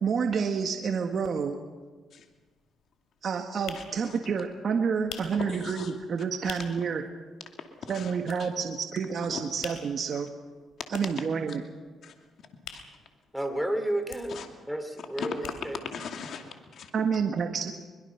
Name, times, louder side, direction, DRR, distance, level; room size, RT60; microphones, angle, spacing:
voice 1, 0.0-1.6 3.2-7.0 7.9-10.3 10.9-11.6 16.9-17.7, right 6 dB, 55° right, 4 dB, 1.7 m, -29 dB
sound 1, 1.8-1.9 2.2-6.9 7.3-7.4 7.6-8.8 9.1-13.7 13.9-16.0 16.3-16.4 16.6-16.7, left 8 dB, 90° left, 3.0 m, -45 dB
voice 2, 5.5-5.9 7.9-8.1 8.4-8.5 9.3-9.4 12.0-12.1 12.7-12.8 14.3-14.5 15.2-15.3 15.9-16.9, left 6 dB, 65° left, 4 dB, 2.5 m, -39 dB
voice 3, 13.3-14.4 14.7-15.8, right 1 dB, ahead, 6 dB, 3.0 m, -31 dB
23.0 x 22.0 x 6.0 m, 1.4 s
cardioid pair, 90°, 0 cm